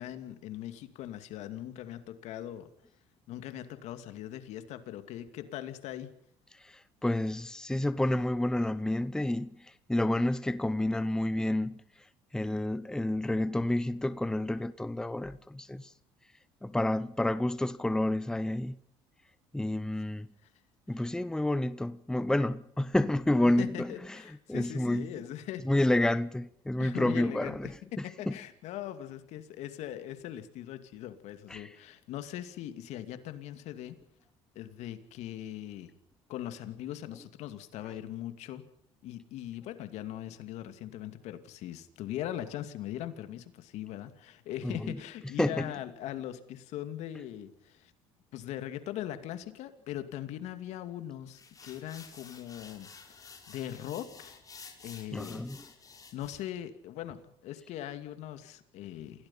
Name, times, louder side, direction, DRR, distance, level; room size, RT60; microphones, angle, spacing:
voice 1, 0.0-2.7 3.3-6.1 23.6-25.6 26.8-27.6 27.9-34.0 34.5-35.9 36.3-38.6 39.0-47.9 48.3-52.9 53.5-54.4 54.8-55.5 56.1-59.3, left 12 dB, 70° left, 2.5 m, -40 dB
voice 2, 6.6-11.8 12.3-15.9 16.6-18.8 19.5-20.3 20.9-24.2 24.5-25.1 25.6-28.3 31.5-31.7 44.6-45.0 45.4-45.7 55.1-55.6, left 1 dB, 5° left, 0.8 m, -29 dB
sound 1, 51.3-56.5, left 5 dB, 30° left, 5.2 m, -51 dB
28.5 x 17.0 x 5.7 m
supercardioid pair, 95°, 12 cm